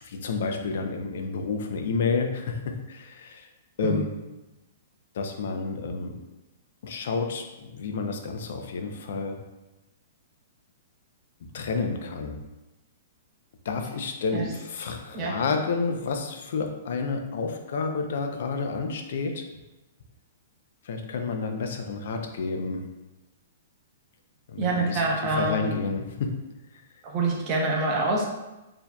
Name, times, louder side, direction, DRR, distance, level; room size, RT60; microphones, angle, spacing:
voice 1, 0.0-3.5 3.8-4.1 5.1-6.2 6.8-9.4 11.5-12.4 13.6-19.5 20.8-22.9 24.5-25.0 25.3-26.5 26.7-26.8, left 4 dB, 60° left, 5 dB, 0.5 m, -30 dB
voice 2, 3.8-4.1 14.3-14.5 15.1-15.4 24.6-25.7 27.0-28.3, right 2 dB, 25° right, -2 dB, 0.7 m, -26 dB
4.4 x 2.7 x 2.2 m, 1.0 s
hypercardioid pair, 165°, 0 cm